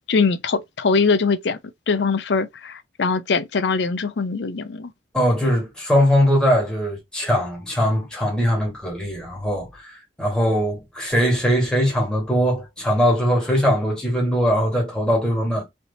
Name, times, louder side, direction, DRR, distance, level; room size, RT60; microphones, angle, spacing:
voice 1, 0.1-1.6 1.9-4.9, left 4 dB, 75° left, 0.5 m, -22 dB
voice 2, 5.1-9.9 10.2-15.7, equal, 5° left, 1.3 m, -21 dB
3.3 x 2.8 x 2.7 m
head